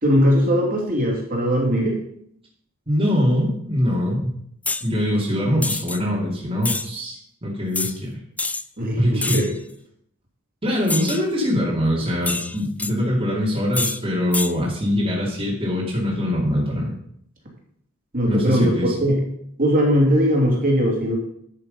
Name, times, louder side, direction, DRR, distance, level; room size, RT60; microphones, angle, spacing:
voice 1, 0.0-2.0 8.8-9.5 18.1-18.7 19.0-19.2 19.6-21.2, equal, 40° right, -2 dB, 2.9 m, -19 dB
voice 2, 2.9-4.4 4.8-8.2 9.0-9.5 10.6-16.9 18.3-18.9, equal, 25° right, -5 dB, 2.7 m, -23 dB
sound 1, 4.6-4.9 5.6-6.0 6.6-6.9 7.7-7.9 8.4-8.6 9.2-9.6 10.9-11.2 12.2-12.9 13.7-14.0 14.3-14.5, left 3 dB, 5° left, 0.3 m, -26 dB
11.0 x 6.7 x 5.4 m, 0.70 s
head